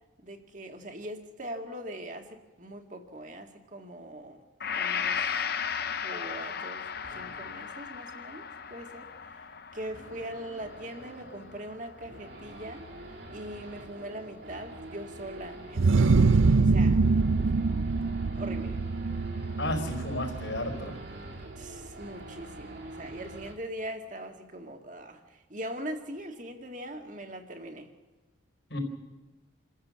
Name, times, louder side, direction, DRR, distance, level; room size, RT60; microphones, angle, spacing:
voice 1, 0.2-4.4 4.8-5.3 6.0-9.5 9.7-12.9 13.3-17.0 17.4-18.0 18.4-18.8 21.6-27.9, right 1 dB, 40° right, 5 dB, 1.9 m, -41 dB
Gong, 4.6-12.6, left 7 dB, 50° left, 0.7 m, -36 dB
Race car auto racing / Idling / Accelerating revving vroom, 6.9-23.5, right 1 dB, 60° right, 3.3 m, -46 dB
sound 1, 15.8-21.3, right 4 dB, 85° right, 0.6 m, -24 dB
voice 2, 19.6-21.0 28.7-28.8, left 1 dB, 70° left, 3 dB, 4.8 m, -33 dB
27.5 x 14.0 x 7.5 m, 1.2 s
head